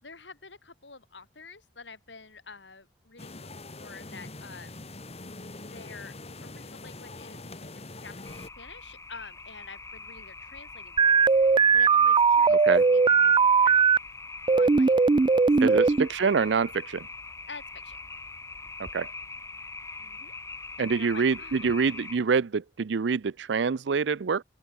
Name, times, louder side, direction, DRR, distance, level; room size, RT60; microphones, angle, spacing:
voice 1, 0.0-3.5 3.7-4.7 5.6-6.1 6.4-11.1 11.4-12.6 12.9-13.9 14.5-14.9 15.6-16.4 17.5-18.0 20.0-20.3 20.8-21.8, left 4 dB, 90° left, 4.6 m, -47 dB
sound 1, 3.2-8.5, left 2 dB, 35° left, 2.0 m, -43 dB
sound 2, 8.2-22.2, left 3 dB, 15° left, 2.5 m, -43 dB
sound 3, 11.0-14.0 14.5-16.1, right 5 dB, 25° right, 0.3 m, -19 dB
voice 2, 12.5-12.9 15.6-15.8 16.1-17.1 18.9-19.1 20.8-24.4, right 5 dB, 80° right, 0.5 m, -26 dB
open air
head